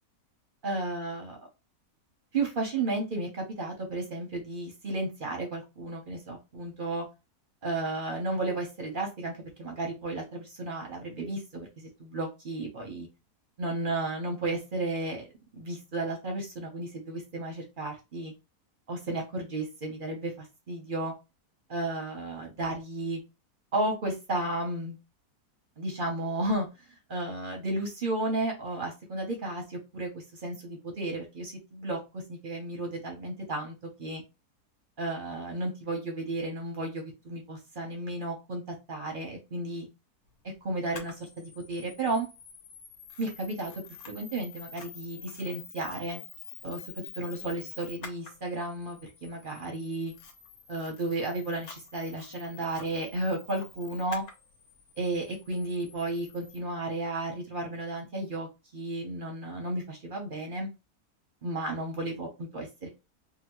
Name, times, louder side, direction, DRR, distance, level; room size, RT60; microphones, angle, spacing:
voice 1, 0.6-1.4 2.3-7.1 7.6-13.1 13.6-15.3 15.5-18.3 18.9-21.1 21.7-23.2 23.7-25.0 25.8-26.7 27.1-34.2 35.0-39.9 40.6-42.3 43.2-43.7 44.1-46.2 46.6-46.8 47.2-50.1 50.7-54.2 55.0-58.5 58.7-60.7 61.4-62.9, right 2 dB, 45° right, 2 dB, 0.7 m, -33 dB
Camera, 40.9-56.6, left 6 dB, 75° left, 1.1 m, -48 dB
2.8 x 2.7 x 2.9 m, 0.27 s
omnidirectional pair, 1.7 m